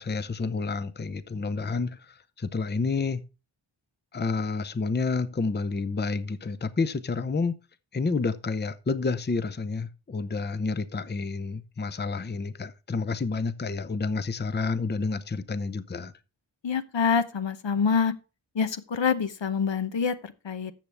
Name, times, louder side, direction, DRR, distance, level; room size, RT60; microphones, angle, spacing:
voice 1, 0.0-3.2 4.1-7.5 7.9-16.1, left 4 dB, 25° left, 0.6 m, -29 dB
voice 2, 16.6-18.1 18.5-20.7, left 6 dB, 70° left, 0.9 m, -26 dB
13.5 x 6.9 x 3.4 m
wide cardioid pair, 60°, 46 cm